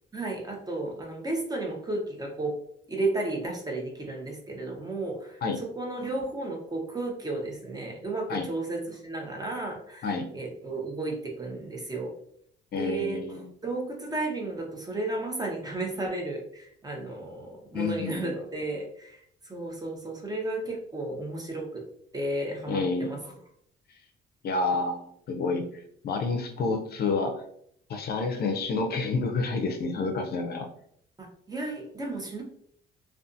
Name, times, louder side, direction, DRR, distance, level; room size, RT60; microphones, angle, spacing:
voice 1, 0.1-2.6 2.9-12.1 12.8-13.2 13.6-21.8 22.1-23.4 31.2-32.4, right 2 dB, 20° right, 1 dB, 0.7 m, -33 dB
voice 2, 12.7-13.5 17.7-18.3 22.7-23.1 24.4-27.4 27.9-30.7, left 3 dB, 55° left, 5 dB, 0.5 m, -29 dB
2.5 x 2.3 x 2.5 m, 0.67 s
cardioid pair, 90°, 20 cm